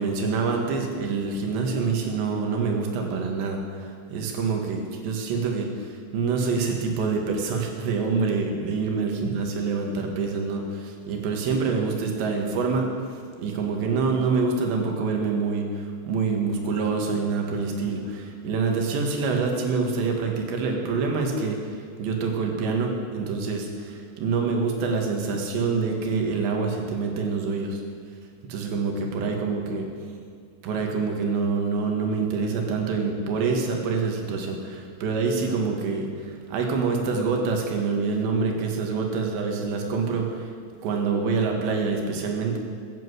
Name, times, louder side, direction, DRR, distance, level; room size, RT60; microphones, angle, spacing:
voice 1, 0.0-12.9 13.4-27.8 28.5-29.9 30.6-40.5 40.8-42.6, right 4 dB, 65° right, 2 dB, 4.0 m, -26 dB
15.5 x 10.5 x 8.2 m, 2.2 s
omnidirectional pair, 5.6 m